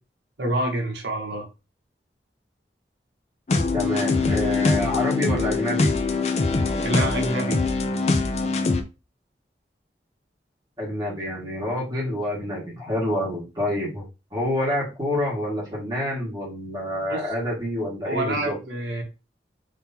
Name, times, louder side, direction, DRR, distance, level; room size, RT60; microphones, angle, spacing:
voice 1, 0.4-1.5 6.8-7.6 17.1-17.3 18.0-19.0, right 1 dB, 85° right, 2 dB, 1.2 m, -27 dB
sound 1, 3.5-8.8, left 3 dB, 40° left, 0.4 m, -23 dB
voice 2, 3.7-5.9 10.8-14.0 14.3-18.6, left 1 dB, 25° right, -5 dB, 1.8 m, -27 dB
3.7 x 3.4 x 2.8 m, 0.28 s
head